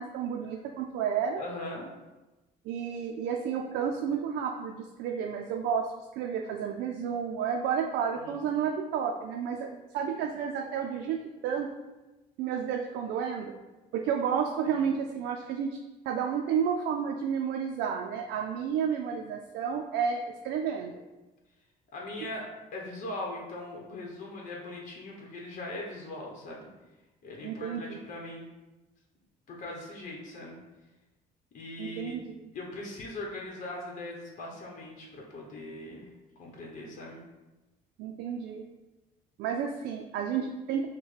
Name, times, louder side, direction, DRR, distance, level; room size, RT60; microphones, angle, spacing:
voice 1, 0.0-1.4 2.6-5.9 6.1-11.2 11.4-11.7 12.4-13.5 13.9-15.8 16.1-21.0 22.2-22.3 27.4-28.0 31.8-32.5 38.0-38.6 39.4-40.9, right 7 dB, 80° right, 1 dB, 0.4 m, -31 dB
voice 2, 1.4-1.9 8.2-8.4 14.7-14.8 21.9-22.5 22.7-26.7 27.2-28.5 29.5-30.6 31.5-32.1 32.5-36.1 36.4-37.2, left 2 dB, 50° left, -2 dB, 1.0 m, -40 dB
6.2 x 2.2 x 3.2 m, 1.1 s
cardioid pair, 110°, 17 cm